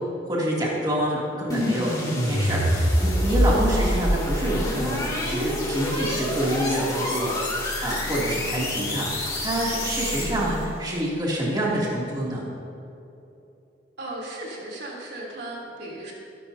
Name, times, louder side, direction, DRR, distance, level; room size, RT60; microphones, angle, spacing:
voice 1, 0.3-12.5, right 1 dB, 20° right, -6 dB, 3.0 m, -27 dB
sound 1, 1.5-10.6, left 1 dB, 20° left, 2.7 m, -26 dB
voice 2, 14.0-16.1, right 1 dB, 60° right, -4 dB, 3.6 m, -36 dB
22.5 x 12.0 x 2.9 m, 2.8 s
head